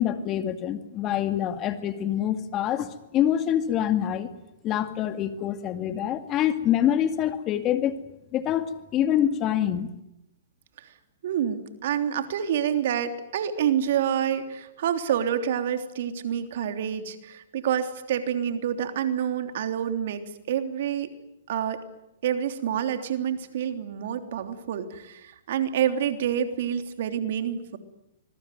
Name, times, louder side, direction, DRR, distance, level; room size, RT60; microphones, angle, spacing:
voice 1, 0.0-4.3 4.6-8.0 8.3-9.9, left 10 dB, 30° left, 9 dB, 2.2 m, -25 dB
voice 2, 11.2-20.2 20.5-21.1 21.5-21.8 22.2-27.8, right 9 dB, 60° right, 7 dB, 3.3 m, -27 dB
25.5 x 22.5 x 9.4 m, 0.89 s
hypercardioid pair, 135°, 0 cm